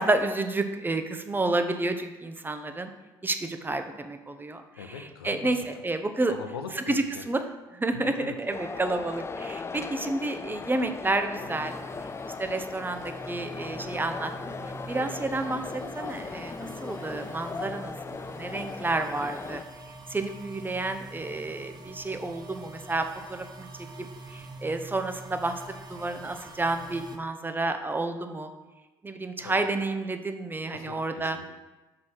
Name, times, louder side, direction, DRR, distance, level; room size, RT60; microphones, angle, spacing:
voice 1, 0.0-2.9 3.2-6.3 6.7-7.5 7.7-11.8 12.3-14.3 14.9-19.6 20.1-23.7 24.0-28.5 29.0-31.4, right 2 dB, 15° right, 7 dB, 0.8 m, -30 dB
voice 2, 4.8-5.4 6.3-7.2 7.9-8.4 29.4-29.6 30.7-31.4, left 6 dB, 85° left, 5 dB, 0.6 m, -41 dB
sound 1, 8.5-19.6, left 4 dB, 20° left, 0.5 m, -38 dB
sound 2, 11.4-27.2, right 3 dB, 35° right, 1.1 m, -45 dB
5.5 x 4.9 x 6.2 m, 1.1 s
hypercardioid pair, 55°, 12 cm